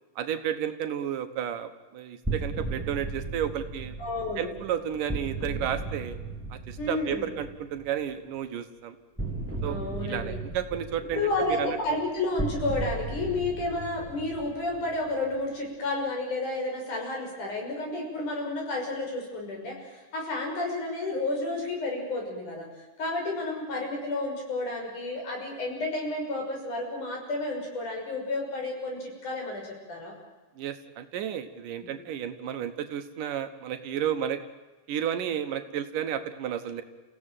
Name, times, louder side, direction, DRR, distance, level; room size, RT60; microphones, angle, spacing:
voice 1, 0.2-4.0 4.4-6.2 6.5-8.9 9.6-11.8 30.6-34.4 34.9-36.8, right 9 dB, 85° right, 9 dB, 3.0 m, -32 dB
sound 1, 2.2-8.0 9.2-15.4, right 3 dB, 5° right, 2.5 m, -36 dB
voice 2, 4.0-4.5 6.8-7.3 9.6-10.4 11.1-30.1 31.8-31.9, left 2 dB, 70° left, 1 dB, 7.6 m, -31 dB
29.0 x 16.5 x 9.1 m, 1.2 s
omnidirectional pair, 3.7 m